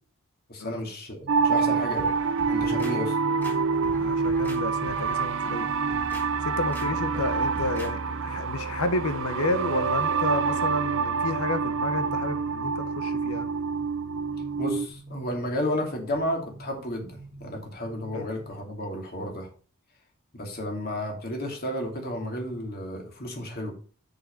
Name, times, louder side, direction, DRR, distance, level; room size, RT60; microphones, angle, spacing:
voice 1, 0.5-2.1 2.5-3.2 14.6-19.5 20.3-23.7, left 1 dB, 45° left, 2 dB, 2.7 m, -32 dB
sound 1, 1.2-18.5, right 2 dB, 45° right, 1.6 m, -48 dB
sound 2, 1.3-14.9, right 5 dB, 60° right, 0.5 m, -27 dB
sound 3, 2.0-2.9 3.4-4.6 4.9-5.2 5.7-6.3 6.7-6.9 7.1-7.9 8.3-8.4, equal, 10° left, 1.9 m, -42 dB
voice 2, 4.0-5.7 6.4-13.5 18.1-18.3, left 2 dB, 80° left, 10 dB, 0.9 m, -31 dB
6.9 x 6.9 x 5.3 m, 0.40 s
head